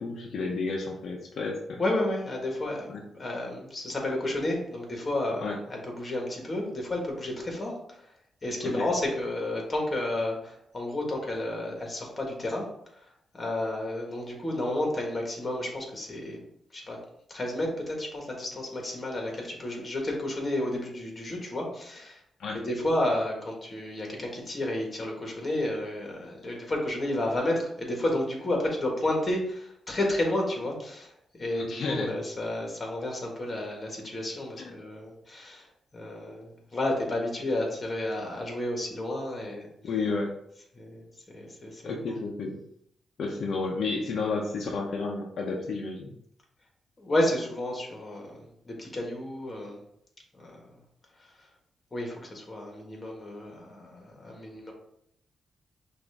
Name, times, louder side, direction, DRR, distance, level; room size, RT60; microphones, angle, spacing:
voice 1, 0.0-1.8 2.9-3.0 5.4-5.6 8.6-8.9 22.4-22.6 31.5-32.1 39.8-40.3 41.8-42.6 43.2-46.1, left 3 dB, 70° left, 0 dB, 0.6 m, -31 dB
voice 2, 1.8-8.0 8.4-12.7 12.9-13.0 13.3-16.4 16.7-17.0 17.3-22.2 22.6-35.7 35.9-39.7 40.7-41.0 41.3-42.2 47.0-49.8 50.4-50.6 51.9-54.7, left 1 dB, 30° left, 0 dB, 1.5 m, -31 dB
5.9 x 2.6 x 3.4 m, 0.72 s
cardioid pair, 100°, 0 cm